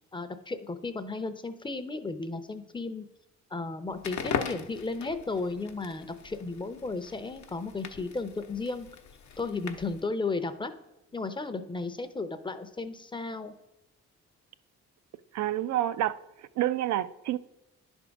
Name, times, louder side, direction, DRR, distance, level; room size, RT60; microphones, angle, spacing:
voice 1, 0.1-3.1 3.5-8.9 9.4-10.7 11.1-13.5, left 3 dB, 15° left, 0.6 m, -34 dB
Crackle, 3.9-10.1, left 6 dB, 70° left, 0.8 m, -39 dB
voice 2, 15.3-16.2 16.6-17.4, right 13 dB, 65° right, 0.5 m, -28 dB
10.5 x 3.6 x 5.1 m
cardioid pair, 90°, 30 cm